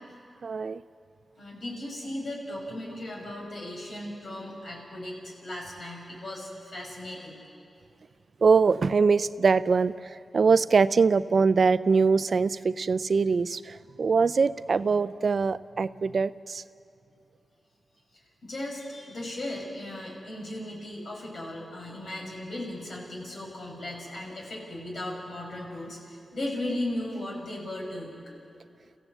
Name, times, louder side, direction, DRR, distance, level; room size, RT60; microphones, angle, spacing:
voice 1, 0.4-0.8 8.4-9.9 10.3-16.6, right 5 dB, 60° right, 15 dB, 0.5 m, -23 dB
voice 2, 1.4-7.4 18.4-28.1, left 1 dB, 65° left, -1 dB, 6.0 m, -36 dB
29.5 x 15.5 x 8.1 m, 2.6 s
wide cardioid pair, 85°, 0 cm